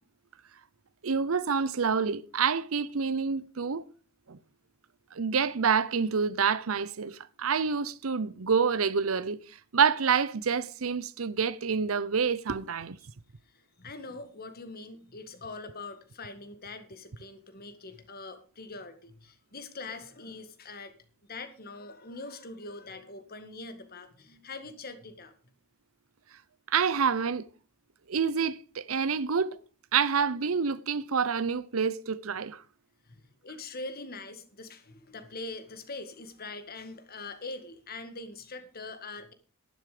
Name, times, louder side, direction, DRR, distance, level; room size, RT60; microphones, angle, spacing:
voice 1, 1.0-3.8 4.3-4.4 5.1-9.4 9.7-13.0 26.7-27.5 28.1-29.6 29.9-32.6, right 6 dB, 85° right, 0.7 m, -27 dB
voice 2, 13.5-20.9 21.3-25.3 33.1-39.3, left 3 dB, 45° left, 1.8 m, -43 dB
11.5 x 11.0 x 5.0 m
head